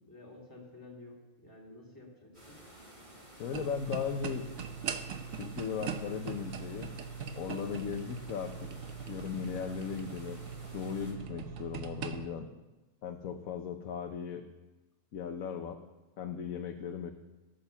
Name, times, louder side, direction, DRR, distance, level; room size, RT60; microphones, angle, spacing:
voice 1, 0.1-2.6, left 2 dB, 15° left, -2 dB, 2.7 m, -51 dB
sound 1, 2.3-11.1, right 1 dB, 35° right, 4.0 m, -53 dB
voice 2, 3.4-4.5 5.4-6.9 7.4-8.7 9.1-10.4 10.7-12.5 13.0-14.4 15.1-15.8 16.2-17.1, left 7 dB, 80° left, 5 dB, 1.3 m, -37 dB
sound 2, 3.5-12.3, right 7 dB, 70° right, 1.2 m, -41 dB
15.0 x 8.8 x 7.0 m, 1.1 s
omnidirectional pair, 1.5 m